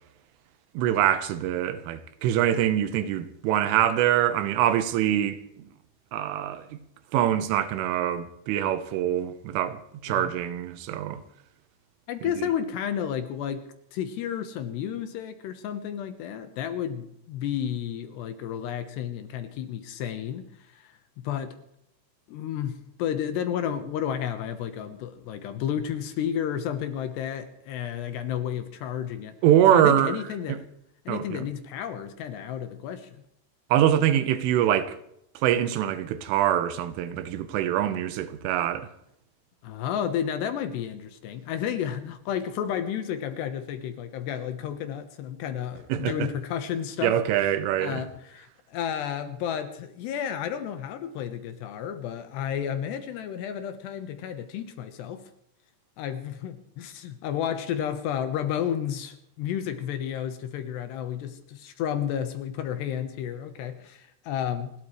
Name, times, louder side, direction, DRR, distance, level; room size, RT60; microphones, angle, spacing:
voice 1, 0.8-5.4 6.1-6.8 7.1-11.2 29.4-30.2 30.5-30.6 31.1-31.4 33.7-35.0 35.4-38.9 45.9-46.3 47.0-48.1, right 11 dB, 90° right, 3.6 m, -24 dB
voice 2, 12.1-21.6 22.3-29.4 29.7-30.6 31.1-33.2 39.6-47.2 47.8-55.3 56.0-64.7, left 9 dB, 70° left, 2.9 m, -32 dB
29.5 x 12.5 x 3.2 m
omnidirectional pair, 5.6 m